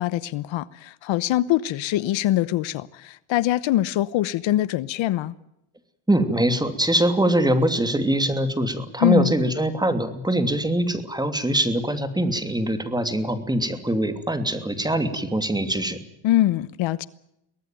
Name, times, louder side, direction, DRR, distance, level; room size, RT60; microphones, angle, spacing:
voice 1, 0.0-5.3 9.0-9.3 16.2-17.1, left 14 dB, 70° left, 1.0 m, -23 dB
voice 2, 6.1-16.0, right 1 dB, 10° right, 2.9 m, -23 dB
23.5 x 18.5 x 9.2 m
cardioid pair, 115°, 47 cm